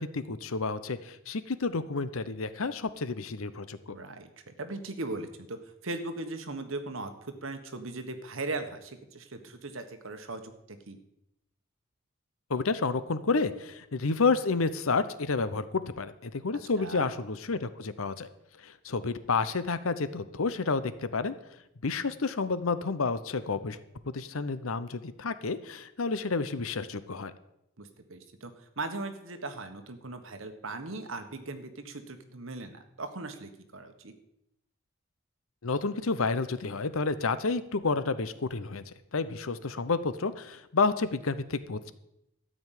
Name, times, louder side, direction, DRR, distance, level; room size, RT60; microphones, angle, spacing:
voice 1, 0.0-4.0 12.5-18.3 18.6-21.3 21.8-23.8 24.1-27.3 35.6-41.9, left 4 dB, 80° left, 13 dB, 0.8 m, -30 dB
voice 2, 3.9-11.0 16.8-17.1 27.8-34.1, right 2 dB, 75° right, 8 dB, 1.4 m, -39 dB
13.0 x 5.2 x 9.2 m, 0.83 s
head